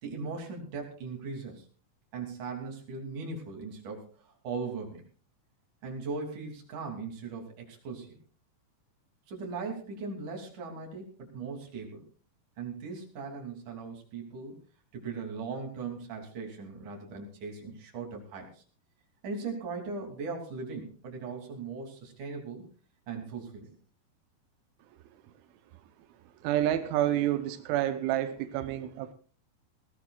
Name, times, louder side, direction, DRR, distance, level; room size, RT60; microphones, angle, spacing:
voice 1, 0.0-1.6 2.1-5.0 5.8-8.2 9.3-12.0 12.6-14.6 14.9-18.6 19.2-22.6 23.1-23.7, right 4 dB, 45° right, 1 dB, 4.0 m, -39 dB
voice 2, 26.4-29.1, right 12 dB, 90° right, 9 dB, 3.3 m, -29 dB
20.5 x 16.5 x 2.4 m, 0.39 s
omnidirectional pair, 5.3 m